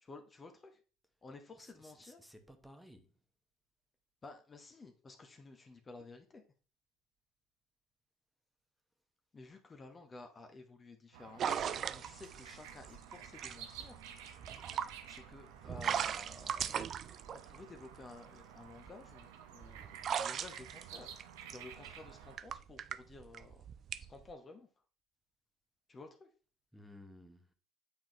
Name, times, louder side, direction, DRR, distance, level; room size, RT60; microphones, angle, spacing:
voice 1, 0.0-0.8 1.2-2.2 4.2-6.4 9.3-14.0 15.1-16.8 17.5-21.1 21.5-23.6 24.1-24.7 25.9-26.3, left 3 dB, 25° left, 0.9 m, -53 dB
voice 2, 1.6-3.1 26.7-27.5, left 1 dB, ahead, 1.0 m, -56 dB
sound 1, 11.1-22.4, right 8 dB, 70° right, 0.8 m, -53 dB
sound 2, 11.4-18.1 18.7-24.3, right 8 dB, 45° right, 0.3 m, -39 dB
8.5 x 3.8 x 3.0 m
hypercardioid pair, 65°, 0 cm